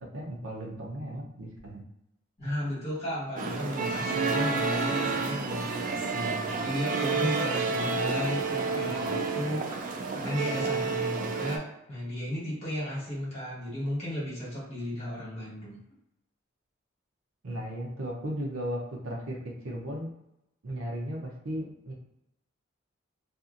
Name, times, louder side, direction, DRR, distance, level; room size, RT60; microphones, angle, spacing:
voice 1, 0.0-1.8 17.4-19.4 19.6-20.1 20.6-21.9, equal, 80° right, -1 dB, 0.7 m, -36 dB
voice 2, 2.4-15.8, equal, 30° left, -7 dB, 1.5 m, -34 dB
sound 1, 3.4-11.6, right 4 dB, 40° right, 0.3 m, -30 dB
2.6 x 2.5 x 2.5 m, 0.86 s
head